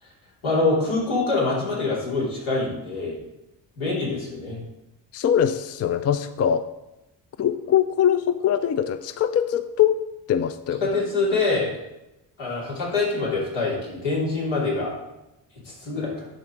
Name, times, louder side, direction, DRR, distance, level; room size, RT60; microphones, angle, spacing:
voice 1, 0.4-3.2 3.8-4.6 10.8-11.7 12.4-14.9 15.7-16.3, left 3 dB, 80° left, -5 dB, 3.1 m, -25 dB
voice 2, 5.1-6.6 7.4-10.0 10.3-10.9, left 9 dB, 35° left, 12 dB, 0.4 m, -22 dB
11.0 x 4.0 x 4.6 m, 0.95 s
supercardioid pair, 60°, 46 cm